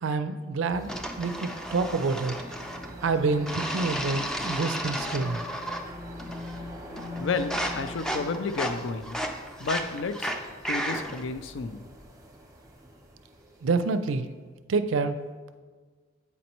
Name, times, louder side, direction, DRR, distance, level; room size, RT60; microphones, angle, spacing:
voice 1, 0.0-2.3 3.0-5.4 13.6-14.3 14.7-15.2, right 4 dB, 70° right, 11 dB, 0.4 m, -27 dB
sound 1, 0.7-14.1, equal, 15° right, 0.8 m, -44 dB
sound 2, 0.9-2.9 3.5-5.9 6.2-6.7 7.0-11.3, equal, 5° left, 0.3 m, -33 dB
voice 2, 7.2-9.2 9.6-10.3 10.7-11.8, left 4 dB, 65° left, 10 dB, 0.4 m, -31 dB
8.3 x 5.2 x 3.0 m, 1.4 s
head